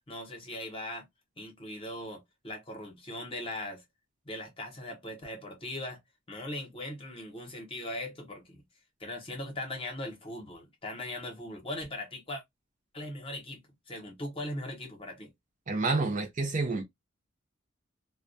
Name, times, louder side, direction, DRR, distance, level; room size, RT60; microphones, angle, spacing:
voice 1, 0.1-1.1 1.4-3.8 4.2-6.0 6.3-8.6 9.0-12.4 12.9-13.6 13.9-15.3, left 1 dB, 25° left, 0.9 m, -39 dB
voice 2, 15.7-16.8, right 3 dB, 40° right, 0.5 m, -29 dB
2.3 x 2.2 x 2.5 m
head